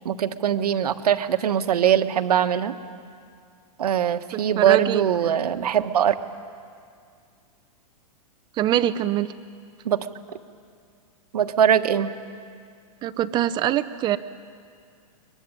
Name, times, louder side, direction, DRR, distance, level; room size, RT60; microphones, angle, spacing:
voice 1, 0.0-2.7 3.8-6.1 9.8-10.0 11.3-12.1, right 9 dB, 85° right, 8 dB, 1.4 m, -21 dB
voice 2, 4.6-5.3 8.5-9.3 13.0-14.2, right 12 dB, 25° right, 12 dB, 0.5 m, -24 dB
23.0 x 21.5 x 9.8 m, 2.3 s
hypercardioid pair, 145°, 19 cm